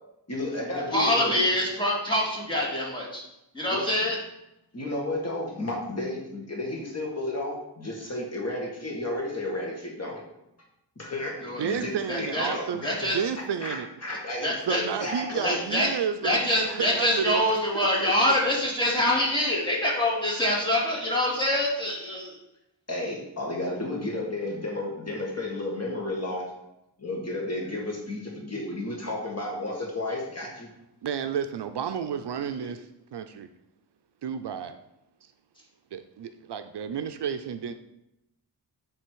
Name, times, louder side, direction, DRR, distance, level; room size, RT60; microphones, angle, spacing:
voice 1, 0.3-1.4 3.7-3.8 4.7-10.2 11.0-11.4 11.6-13.0 13.6-15.6 22.9-26.4 27.0-30.7, left 1 dB, 35° left, -2 dB, 1.9 m, -32 dB
voice 2, 0.9-3.2 3.5-4.2 11.4-11.6 12.1-12.5 12.8-13.2 14.4-14.8 15.4-15.9 16.2-22.3 32.6-32.7, left 1 dB, 10° left, -5 dB, 2.4 m, -25 dB
voice 3, 11.6-13.9 14.7-17.4 17.7-18.1 31.0-33.5 34.2-34.8 35.9-37.7, right 7 dB, 65° right, 9 dB, 0.5 m, -31 dB
9.8 x 3.4 x 4.6 m, 0.88 s
wide cardioid pair, 100°, 44 cm